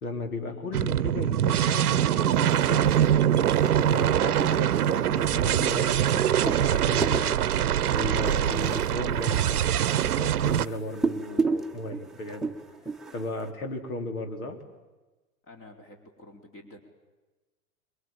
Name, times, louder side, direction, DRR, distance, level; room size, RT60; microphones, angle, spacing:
voice 1, 0.0-3.0 3.4-7.4 7.9-12.5 13.1-14.6, left 2 dB, 65° left, 6 dB, 4.2 m, -35 dB
sound 1, 0.7-10.7, right 10 dB, 70° right, 0.9 m, -23 dB
sound 2, 2.3-13.5, right 3 dB, ahead, 1.3 m, -35 dB
voice 2, 15.4-16.8, left 1 dB, 30° left, 4 dB, 4.4 m, -49 dB
26.5 x 22.5 x 9.1 m, 1.2 s
figure-of-eight pair, 100°, 46 cm